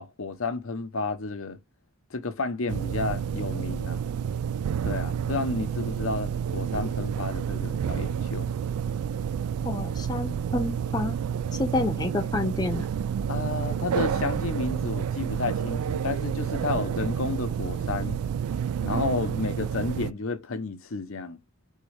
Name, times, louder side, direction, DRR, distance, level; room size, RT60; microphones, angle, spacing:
voice 1, 0.0-1.6 2.1-4.0 4.8-8.5 13.3-18.2 18.8-21.4, left 3 dB, 70° left, 0.8 m, -31 dB
sound 1, 2.7-20.1, right 8 dB, 90° right, 0.3 m, -29 dB
voice 2, 9.6-11.2 11.5-12.9, left 2 dB, 20° left, 0.5 m, -28 dB
4.1 x 3.7 x 3.3 m
head